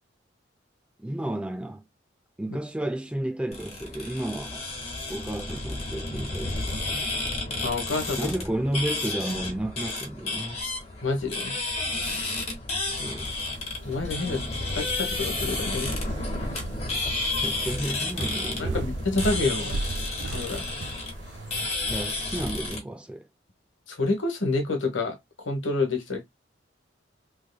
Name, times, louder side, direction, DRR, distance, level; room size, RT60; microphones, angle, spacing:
voice 1, 1.0-1.8 2.4-4.7 5.1-7.1 8.2-10.6 13.0-13.3 17.2-18.9 21.9-23.3, right 1 dB, 5° right, 0.4 m, -32 dB
sound 1, 3.5-22.8, left 2 dB, 35° left, 1.2 m, -31 dB
voice 2, 7.6-8.3 11.0-11.7 13.8-15.9 18.6-19.8 20.3-20.6 23.9-25.2 25.4-26.2, left 3 dB, 90° left, 1.2 m, -28 dB
sound 2, 13.2-21.7, right 3 dB, 65° right, 0.4 m, -36 dB
3.5 x 3.2 x 2.2 m
head